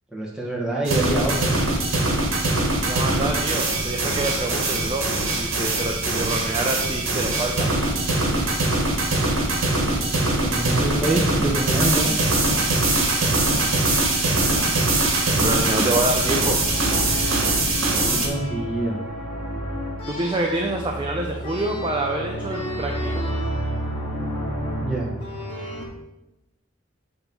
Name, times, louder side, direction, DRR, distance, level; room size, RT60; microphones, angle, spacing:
voice 1, 0.1-1.6 10.4-12.1 18.1-19.0 24.8-25.1, right 2 dB, 5° right, -4 dB, 1.1 m, -25 dB
sound 1, 0.9-18.3, right 2 dB, 75° right, 1.4 m, -22 dB
voice 2, 2.8-5.1 5.3-7.7 15.4-16.6 20.1-23.2, right 1 dB, 25° right, 2 dB, 0.5 m, -26 dB
sound 2, 16.1-25.8, equal, 25° left, 1.3 m, -30 dB
8.0 x 2.9 x 5.3 m, 0.92 s
head